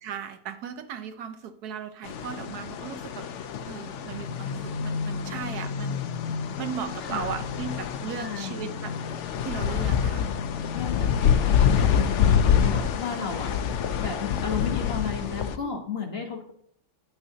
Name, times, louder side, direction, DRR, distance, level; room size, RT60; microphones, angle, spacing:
voice 1, 0.0-3.3 3.7-6.0 6.6-8.9 9.4-10.2 13.2-13.3 15.6-15.8, right 8 dB, 75° right, 10 dB, 1.2 m, -36 dB
sound 1, 2.0-15.6, left 8 dB, 65° left, 0.8 m, -26 dB
voice 2, 7.0-7.3 8.1-8.7 10.7-16.5, left 6 dB, 40° left, 2 dB, 1.4 m, -34 dB
10.0 x 8.9 x 2.8 m, 0.68 s
omnidirectional pair, 1.7 m